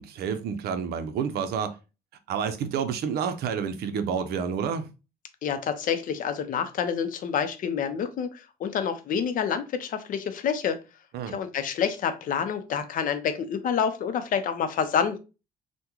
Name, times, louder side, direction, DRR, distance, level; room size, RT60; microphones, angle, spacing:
voice 1, 0.0-1.8 2.3-4.9 11.1-11.4, right 7 dB, 70° right, 0.6 m, -29 dB
voice 2, 5.4-10.8 11.3-15.2, left 7 dB, 55° left, 0.6 m, -28 dB
3.5 x 2.2 x 2.9 m
cardioid pair, 110°, 17 cm